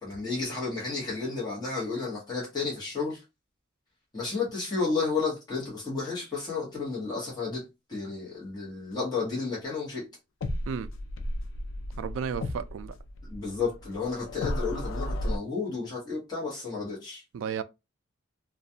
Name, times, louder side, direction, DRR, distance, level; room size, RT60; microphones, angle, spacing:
voice 1, 0.0-3.2 4.1-7.6 7.9-10.0 13.3-17.2, left 4 dB, 20° left, 1.0 m, -32 dB
sound 1, 10.4-15.4, left 1 dB, 80° left, 0.4 m, -34 dB
voice 2, 12.0-12.9 17.3-17.6, right 7 dB, 85° right, 0.3 m, -33 dB
2.4 x 2.2 x 2.7 m
head